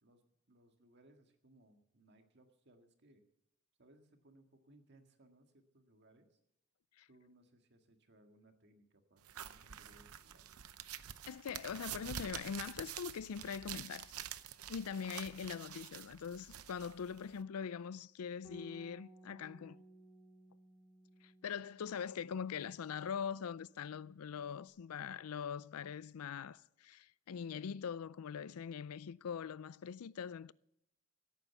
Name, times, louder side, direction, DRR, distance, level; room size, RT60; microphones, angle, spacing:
voice 1, 0.0-3.2 3.8-6.3 7.1-10.5, right 1 dB, 50° right, 1.8 m, -66 dB
sound 1, 9.2-17.4, right 9 dB, 85° right, 0.7 m, -48 dB
voice 2, 11.3-14.1 14.7-19.8 21.2-30.5, left 7 dB, 85° left, 0.4 m, -42 dB
Bass guitar, 18.4-24.7, equal, 5° left, 2.5 m, -60 dB
16.5 x 9.2 x 6.9 m
head